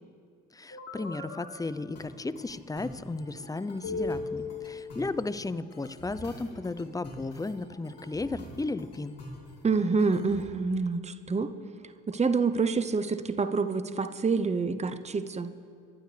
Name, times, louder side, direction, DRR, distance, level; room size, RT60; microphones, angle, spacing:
voice 1, 0.5-9.1, left 3 dB, 10° left, 15 dB, 0.6 m, -34 dB
sound 1, 0.7-1.5 2.0-10.4, left 3 dB, 50° left, 3.2 m, -41 dB
voice 2, 9.6-11.5 12.1-15.5, right 4 dB, 20° right, 10 dB, 0.8 m, -27 dB
24.5 x 11.5 x 3.4 m, 2.2 s
hypercardioid pair, 55°, 31 cm